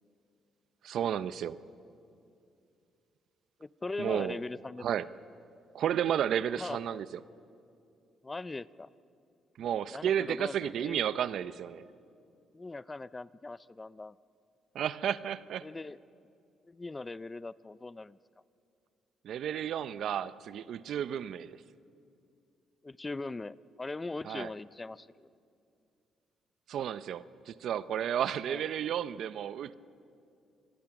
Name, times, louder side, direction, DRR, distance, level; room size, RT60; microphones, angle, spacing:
voice 1, 0.8-1.6 4.0-4.4 4.8-5.1 5.7-7.1 9.6-11.8 14.7-15.7 19.2-21.6 24.3-24.5 26.7-29.7, right 9 dB, 70° right, 15 dB, 0.6 m, -32 dB
voice 2, 3.6-4.8 6.6-7.0 8.2-8.9 9.9-11.0 12.5-14.2 15.6-16.0 16.7-18.2 22.8-25.3 28.5-28.6, left 3 dB, 20° left, 18 dB, 0.4 m, -40 dB
26.5 x 21.5 x 6.0 m, 2.5 s
cardioid pair, 90°, 0 cm